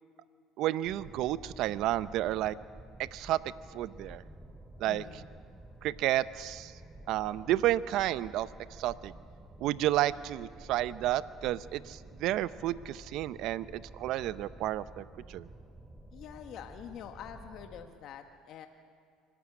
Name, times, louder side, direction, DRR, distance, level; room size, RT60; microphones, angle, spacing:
voice 1, 0.6-2.6 3.0-4.2 4.8-5.0 5.8-6.7 7.1-9.1 9.6-15.5, right 14 dB, 65° right, 16 dB, 0.7 m, -31 dB
sound 1, 0.8-17.9, right 1 dB, 15° right, 2.6 m, -51 dB
voice 2, 4.9-5.3 16.1-18.7, left 9 dB, 60° left, 5 dB, 1.5 m, -46 dB
25.0 x 14.5 x 9.9 m, 2.1 s
supercardioid pair, 80°, 0 cm